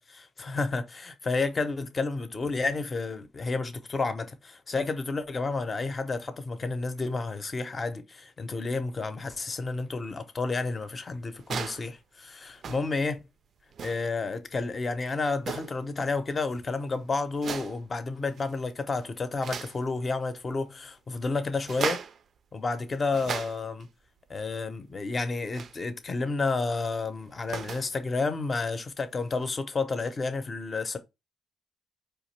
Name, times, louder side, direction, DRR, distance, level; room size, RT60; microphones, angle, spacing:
voice 1, 0.0-13.2 13.8-22.0 22.5-23.9 24.3-31.0, left 3 dB, 30° left, 0.7 m, -31 dB
sound 1, 11.4-11.9 12.6-13.0 13.7-14.1 15.4-15.9 17.3-17.9 18.3-18.7 19.0-19.8 21.6-22.2 22.9-23.8 25.5-25.8 27.2-27.9 29.4-29.5, right 6 dB, 55° right, 0.4 m, -36 dB
4.7 x 2.9 x 3.1 m
cardioid pair, 125°, 0 cm